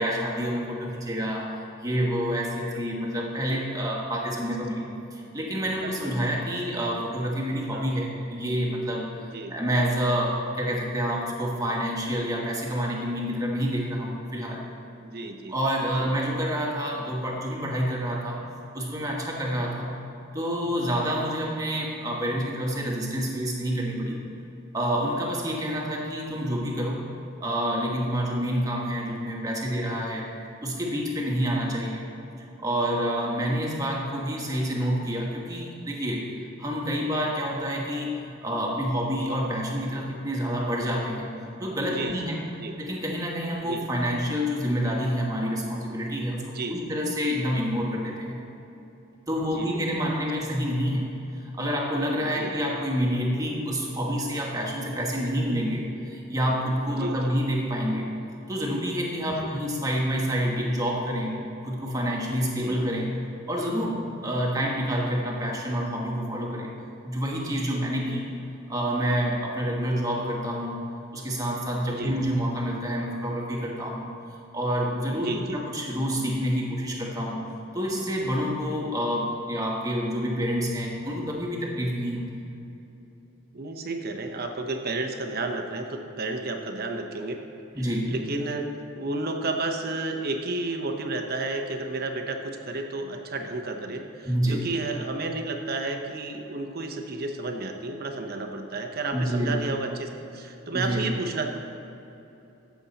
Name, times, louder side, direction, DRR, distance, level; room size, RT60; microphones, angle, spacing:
voice 1, 0.0-14.7 15.5-18.4 18.7-19.9 20.3-24.2 24.7-27.0 27.4-30.3 30.6-32.1 32.6-36.3 36.6-41.3 41.6-42.4 42.8-48.4 49.3-58.1 58.5-63.2 63.5-66.7 67.0-68.3 68.7-70.8 71.1-74.1 74.5-77.5 77.7-82.5 87.7-88.1 94.2-94.7 99.1-99.6 100.7-101.1, equal, 15° right, -2 dB, 1.4 m, -28 dB
voice 2, 15.0-15.5 16.0-16.1 41.9-42.3 42.6-42.7 43.7-43.9 46.4-46.9 49.5-50.2 52.2-52.5 57.0-57.3 59.2-59.5 62.6-62.8 68.1-68.2 71.9-72.1 75.1-75.6 83.5-87.4 87.8-88.7 89.0-101.5, right 2 dB, 45° right, 4 dB, 0.9 m, -32 dB
14.5 x 7.2 x 4.1 m, 3.0 s
head